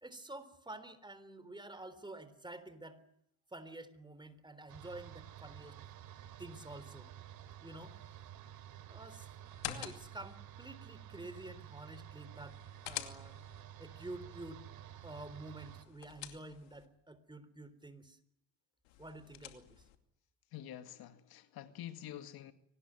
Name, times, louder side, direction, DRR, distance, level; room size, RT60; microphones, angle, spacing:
voice 1, 0.0-3.0 3.5-5.8 6.4-7.1 7.6-8.0 8.9-9.3 9.7-12.6 12.9-13.4 13.8-14.7 15.0-18.2 19.0-19.8, right 2 dB, 10° right, 13 dB, 3.7 m, -49 dB
sound 1, 4.7-15.8, right 11 dB, 65° right, 3.1 m, -52 dB
sound 2, 9.4-10.4 12.3-13.6 15.6-16.9 18.8-20.0, left 14 dB, 90° left, 2.6 m, -47 dB
voice 2, 20.5-22.5, left 11 dB, 65° left, 9 dB, 2.1 m, -47 dB
24.5 x 19.5 x 10.0 m, 0.79 s
supercardioid pair, 90°, 39 cm